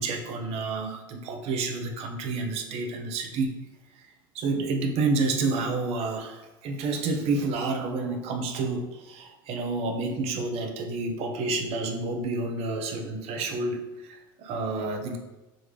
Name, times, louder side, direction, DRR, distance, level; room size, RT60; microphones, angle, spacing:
voice 1, 0.0-3.5 4.3-15.2, right 3 dB, 60° right, 4 dB, 0.7 m, -29 dB
4.1 x 3.4 x 3.1 m, 1.1 s
hypercardioid pair, 75°, 12 cm